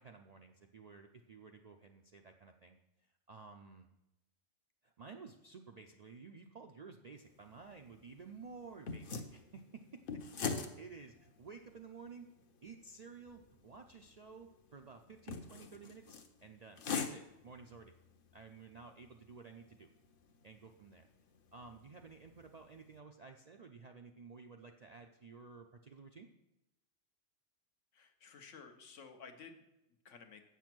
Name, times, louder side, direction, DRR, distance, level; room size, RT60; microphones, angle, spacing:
voice 1, 0.0-3.9 4.8-12.3 12.6-17.9 18.3-19.9 20.4-21.1 21.5-26.3, right 5 dB, 55° right, 4 dB, 0.4 m, -54 dB
sound 1, 7.2-23.0, left 5 dB, 50° left, 0.8 m, -46 dB
voice 2, 27.9-30.4, left 5 dB, 75° left, 6 dB, 1.3 m, -55 dB
8.1 x 7.0 x 6.0 m, 0.92 s
omnidirectional pair, 1.3 m